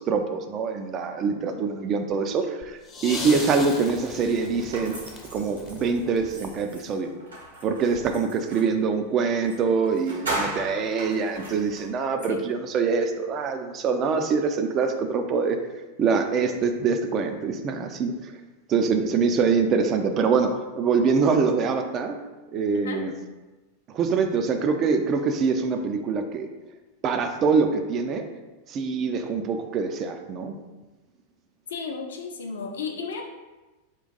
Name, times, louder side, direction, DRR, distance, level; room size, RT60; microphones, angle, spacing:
voice 1, 0.0-5.0 5.3-7.1 7.6-15.6 16.0-18.1 18.7-22.2 22.5-23.1 23.9-26.5 27.0-28.3 28.7-30.6, right 5 dB, 30° right, 6 dB, 0.3 m, -24 dB
sound 1, 2.6-6.8 8.0-8.1, left 3 dB, 20° left, 0.6 m, -38 dB
sound 2, 4.7-8.8 9.4-9.6 9.9-11.9, right 1 dB, 75° right, 1.3 m, -36 dB
voice 2, 31.7-33.2, left 5 dB, 65° left, 2 dB, 0.5 m, -34 dB
3.8 x 2.5 x 3.9 m, 1.2 s
figure-of-eight pair, 90°, 0 cm